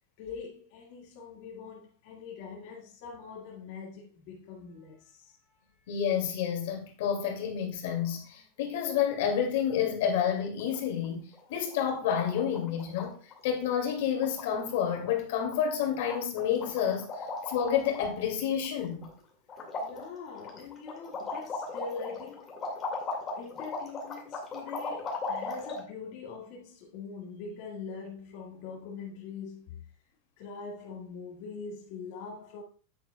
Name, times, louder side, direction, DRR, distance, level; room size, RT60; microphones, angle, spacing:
voice 1, 0.2-5.9 17.1-17.2 19.8-22.5 23.4-29.8 30.4-32.6, left 5 dB, 40° left, 1.8 m, -43 dB
voice 2, 5.9-13.2 13.4-17.1 17.5-19.0, left 8 dB, 60° left, 2.3 m, -29 dB
sound 1, 10.6-11.1 11.3-11.4 11.7-12.0 12.2-13.1 13.3-13.5 13.8-13.9 14.2-14.7 15.1-15.2 15.5-15.8 16.1-18.0 18.4-19.2 19.5-25.8, left 3 dB, 20° left, 2.1 m, -37 dB
9.6 x 9.2 x 2.3 m
supercardioid pair, 180°, 0 cm